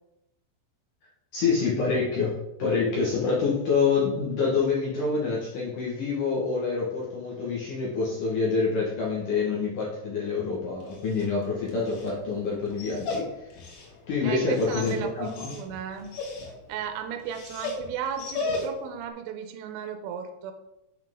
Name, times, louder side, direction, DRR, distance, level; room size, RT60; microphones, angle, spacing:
voice 1, 1.3-13.5 14.1-15.5, left 4 dB, 70° left, -6 dB, 2.0 m, -27 dB
Dog, 10.7-19.0, left 3 dB, 85° left, 4.2 m, -37 dB
voice 2, 14.2-16.1 16.4-20.5, right 8 dB, 90° right, 6 dB, 3.5 m, -35 dB
8.2 x 5.9 x 3.7 m, 0.88 s
omnidirectional pair, 6.0 m